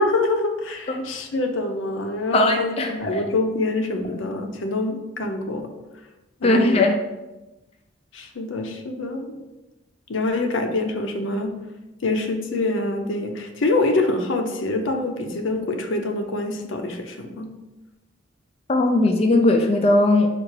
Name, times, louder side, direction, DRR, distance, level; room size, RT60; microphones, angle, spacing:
voice 1, 0.0-5.7 6.4-6.8 8.1-9.4 10.1-11.5 12.0-17.5, left 2 dB, 85° left, 5 dB, 0.6 m, -25 dB
voice 2, 2.3-3.2 6.4-6.9 18.7-20.3, left 2 dB, 30° left, 3 dB, 0.4 m, -18 dB
4.5 x 2.4 x 4.7 m, 1.0 s
head